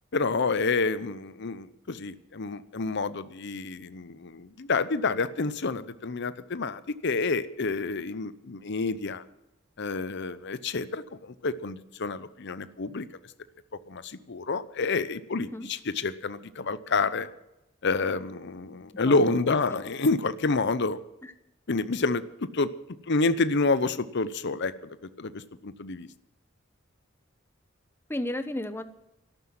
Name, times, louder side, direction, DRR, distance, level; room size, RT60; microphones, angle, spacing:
voice 1, 0.1-9.2 9.8-13.1 13.9-17.3 17.8-21.0 21.7-22.7 23.1-26.1, left 3 dB, 60° left, 14 dB, 0.8 m, -28 dB
voice 2, 15.4-15.7 19.0-19.3 19.7-19.8 20.6-20.8 28.1-28.8, left 1 dB, 10° left, 11 dB, 0.9 m, -34 dB
14.0 x 11.5 x 7.7 m, 0.91 s
head